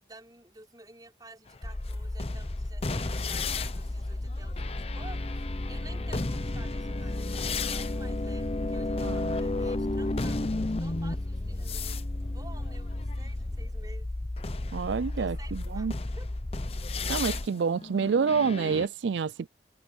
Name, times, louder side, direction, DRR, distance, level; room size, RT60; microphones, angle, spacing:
voice 1, 0.0-5.4 5.7-14.1 15.2-15.9 16.2-16.3, right 2 dB, 20° right, 5.7 m, -52 dB
sound 1, 1.5-13.7 14.4-18.9, left 3 dB, 35° left, 0.8 m, -35 dB
sound 2, 1.6-17.5, left 1 dB, 15° left, 0.4 m, -35 dB
voice 2, 9.0-9.4 14.7-15.9 17.1-19.5, right 5 dB, 90° right, 0.4 m, -28 dB
head